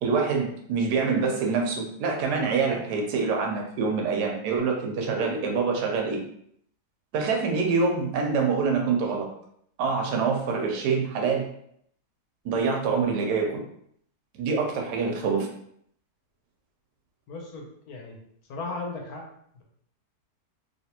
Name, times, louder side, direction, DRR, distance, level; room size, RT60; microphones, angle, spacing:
voice 1, 0.0-6.2 7.1-9.3 9.8-11.5 12.4-13.7 14.4-15.5, right 5 dB, 85° right, 1 dB, 1.3 m, -25 dB
voice 2, 17.3-18.2 18.5-19.3, left 3 dB, 70° left, 0 dB, 1.2 m, -36 dB
3.2 x 2.8 x 2.9 m, 0.69 s
omnidirectional pair, 1.7 m